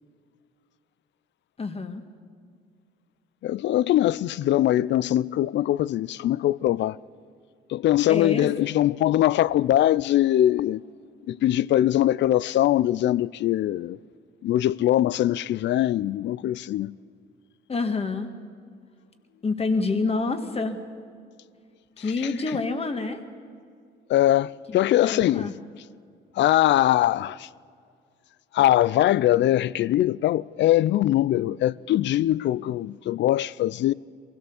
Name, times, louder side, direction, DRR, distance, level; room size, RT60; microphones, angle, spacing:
voice 1, 1.6-2.0 8.1-8.5 17.7-18.3 19.4-20.8 22.0-23.2 24.7-25.5, left 3 dB, 30° left, 1.7 m, -27 dB
voice 2, 3.4-7.0 7.7-10.8 11.3-14.0 14.4-16.9 24.1-25.5 26.4-27.5 28.5-33.9, left 13 dB, 65° left, 0.4 m, -22 dB
23.0 x 16.5 x 7.1 m
cardioid pair, 90°, 20 cm